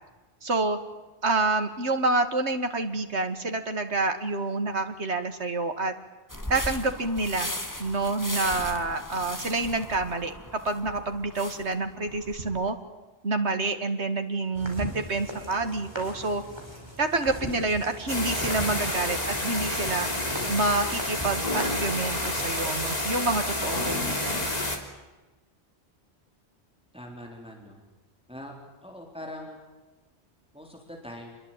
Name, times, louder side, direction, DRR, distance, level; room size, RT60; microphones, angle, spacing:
voice 1, 0.4-0.8 1.2-5.9 6.5-7.5 7.8-12.8 13.2-16.4 17.0-20.1 20.5-24.5, right 3 dB, 85° right, 7 dB, 2.4 m, -28 dB
sound 1, 6.3-12.7, left 1 dB, 15° left, 2.2 m, -37 dB
sound 2, 14.5-22.4, equal, 25° right, 5.3 m, -40 dB
sound 3, 18.1-24.8, left 1 dB, 35° left, 3.5 m, -29 dB
voice 2, 26.9-27.8 28.3-28.5 28.8-29.6 30.5-31.4, left 1 dB, 5° right, 1 dB, 4.0 m, -42 dB
27.5 x 21.5 x 9.1 m, 1.2 s
omnidirectional pair, 1.1 m